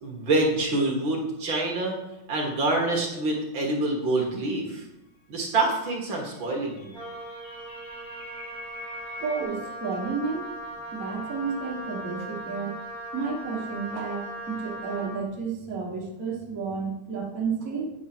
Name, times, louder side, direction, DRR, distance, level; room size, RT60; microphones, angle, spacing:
voice 1, 0.0-1.9 2.3-4.8 5.3-7.0, right 2 dB, 60° right, -1 dB, 1.3 m, -26 dB
sound 1, 6.3-9.4, left 2 dB, 55° left, 2.7 m, -43 dB
Wind instrument woodwind instrument, 6.9-15.2, right 1 dB, 35° right, 1.5 m, -39 dB
voice 2, 9.2-10.6 10.9-12.8 13.1-17.9, right 5 dB, 85° right, -2 dB, 0.7 m, -31 dB
9.2 x 6.2 x 6.1 m, 0.93 s
omnidirectional pair, 4.5 m